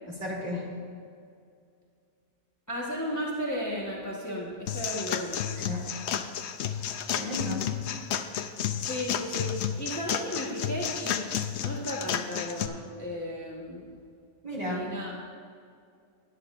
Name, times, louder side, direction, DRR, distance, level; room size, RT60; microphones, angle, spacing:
voice 1, 0.2-0.7 5.6-5.8 7.1-7.6 14.4-14.8, left 1 dB, 35° right, -5 dB, 2.4 m, -33 dB
voice 2, 2.7-5.4 8.8-9.5 9.8-11.2 11.6-13.9 14.6-15.1, equal, 15° left, -5 dB, 1.3 m, -34 dB
sound 1, 4.7-12.7, left 9 dB, 75° left, 0.9 m, -32 dB
17.5 x 9.8 x 2.5 m, 2.3 s
omnidirectional pair, 1.2 m